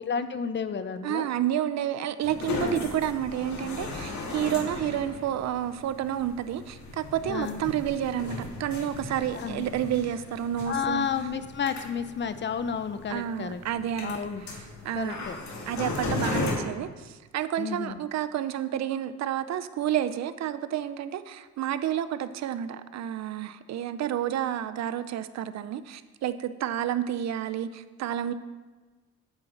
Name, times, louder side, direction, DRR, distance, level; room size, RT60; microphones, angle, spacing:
voice 1, 0.0-1.3 2.6-2.9 7.3-7.6 9.3-9.7 10.6-13.6 14.0-14.4 14.9-15.4 17.6-18.0, left 7 dB, 40° left, 11 dB, 0.7 m, -31 dB
voice 2, 1.0-11.1 13.1-14.2 14.8-15.2 15.7-28.3, right 10 dB, 60° right, 12 dB, 0.6 m, -30 dB
sound 1, 2.2-16.5, left 3 dB, 65° left, 1.8 m, -36 dB
9.0 x 7.2 x 3.9 m, 1.3 s
cardioid pair, 90°, 30 cm